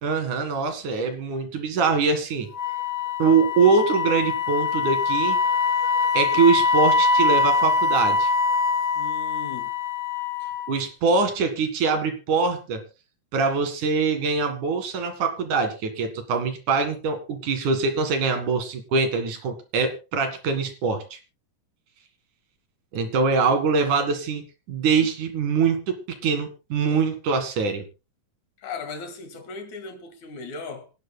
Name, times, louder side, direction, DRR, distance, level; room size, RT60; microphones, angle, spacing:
voice 1, 0.0-2.5 3.2-5.4 6.1-8.3 10.7-12.8 13.3-21.2 22.9-24.4 24.7-27.8, right 4 dB, 70° right, 3.4 m, -23 dB
Wind instrument woodwind instrument, 2.5-10.8, left 4 dB, 30° left, 1.8 m, -23 dB
voice 2, 8.9-9.7 28.6-30.8, left 4 dB, 65° left, 3.1 m, -37 dB
26.0 x 11.0 x 2.2 m
omnidirectional pair, 3.7 m